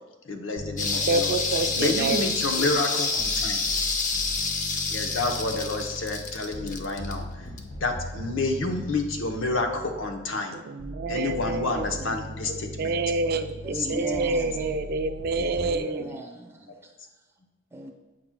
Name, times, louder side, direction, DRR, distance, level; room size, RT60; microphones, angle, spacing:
voice 1, 0.2-1.4 1.8-3.6 4.9-7.5 7.8-10.6 11.1-12.9 13.7-14.0 15.4-15.8, left 2 dB, 80° left, 4 dB, 0.8 m, -29 dB
sound 1, 0.6-2.7 3.2-10.3 10.8-15.8, equal, 60° left, 1.2 m, -39 dB
sound 2, 0.8-7.8 8.1-8.2, left 4 dB, 40° left, 0.5 m, -28 dB
voice 2, 1.0-2.3 2.6-2.8 10.5-12.1 12.4-16.2, right 3 dB, 50° right, 9 dB, 0.4 m, -28 dB
voice 3, 13.6-14.7 15.5-16.9 17.7-17.9, right 1 dB, 15° right, 0 dB, 0.8 m, -37 dB
7.6 x 5.8 x 2.2 m, 1.1 s
head